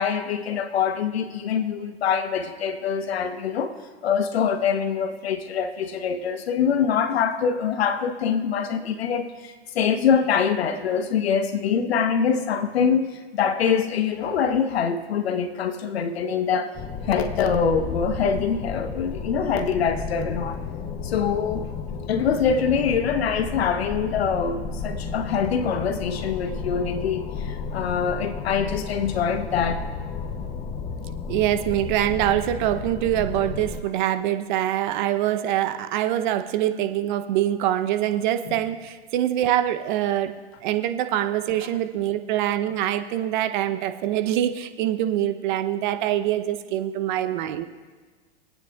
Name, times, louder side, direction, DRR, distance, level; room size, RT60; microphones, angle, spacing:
voice 1, 0.0-3.7 4.0-16.8 17.0-20.6 21.0-21.7 22.1-29.9 38.5-38.6, left 7 dB, 70° left, 1.2 m, -24 dB
sound 1, 16.7-33.8, left 5 dB, 20° left, 0.6 m, -33 dB
voice 2, 31.3-40.3 40.6-47.6, right 12 dB, 45° right, 0.9 m, -24 dB
25.0 x 9.2 x 2.4 m
hypercardioid pair, 120°, 33 cm